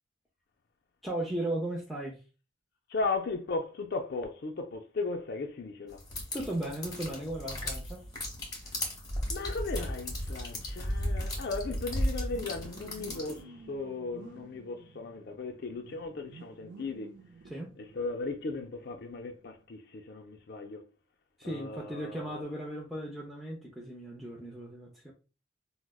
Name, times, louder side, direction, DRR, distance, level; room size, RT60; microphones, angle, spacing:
voice 1, 1.0-2.2 6.3-8.0 17.5-17.7 21.4-25.1, right 1 dB, ahead, 0.5 m, -36 dB
voice 2, 2.9-6.0 9.3-17.1 17.8-20.8 21.4-22.5, left 3 dB, 55° left, 0.4 m, -36 dB
sound 1, 6.0-13.4, left 1 dB, 20° left, 0.9 m, -35 dB
sound 2, 6.7-19.7, right 3 dB, 65° right, 0.4 m, -55 dB
4.6 x 2.1 x 2.2 m
head